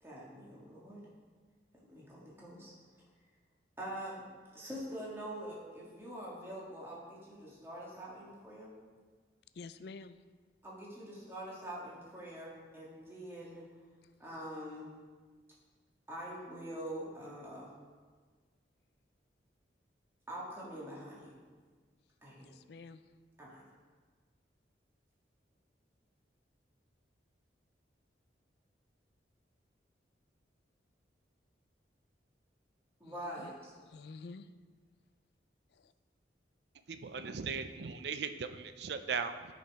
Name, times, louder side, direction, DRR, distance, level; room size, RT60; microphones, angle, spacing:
voice 1, 0.0-1.0 1.9-2.7 3.8-4.2 4.5-8.7 10.6-13.7 14.2-14.9 16.1-17.7 20.3-21.4 22.2-22.5 23.4-23.6 33.0-33.7, right 1 dB, 15° right, -6 dB, 1.8 m, -44 dB
voice 2, 9.5-10.2 22.4-23.0 33.0-33.5 33.9-34.5 35.7-35.9, left 4 dB, 60° left, 12 dB, 0.4 m, -49 dB
voice 3, 36.9-39.5, right 5 dB, 65° right, 9 dB, 0.5 m, -38 dB
10.5 x 5.3 x 4.7 m, 1.5 s
head